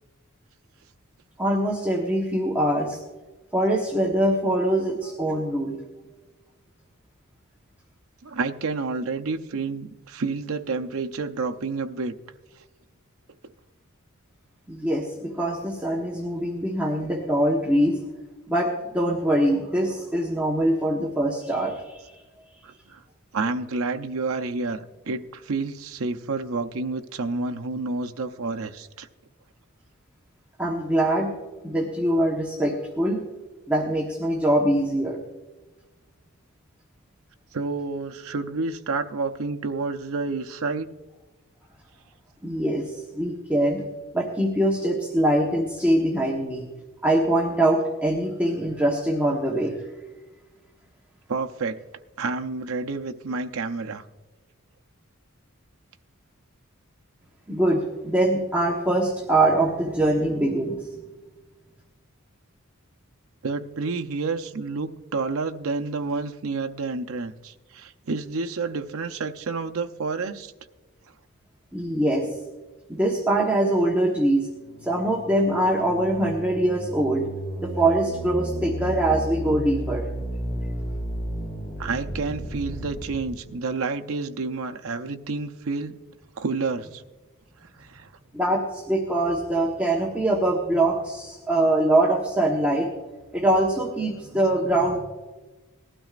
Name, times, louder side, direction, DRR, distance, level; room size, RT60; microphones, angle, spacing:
voice 1, 1.4-3.0 3.5-5.7 14.7-18.0 18.5-22.1 30.6-31.3 31.6-33.2 33.7-35.2 42.4-43.8 44.1-46.6 47.0-49.8 57.5-60.9 71.7-72.3 72.9-74.5 74.8-77.3 77.6-80.0 88.3-92.9 93.3-95.0, right 1 dB, 5° right, -3 dB, 1.1 m, -23 dB
voice 2, 8.2-12.1 22.6-23.0 23.3-29.1 37.5-40.9 51.3-51.8 52.2-54.0 63.4-70.5 81.8-86.0 86.4-87.0 87.8-88.1, right 3 dB, 70° right, 6 dB, 0.6 m, -29 dB
sound 1, 74.5-83.3, right 1 dB, 30° left, 2.1 m, -33 dB
18.5 x 12.5 x 2.5 m, 1.2 s
head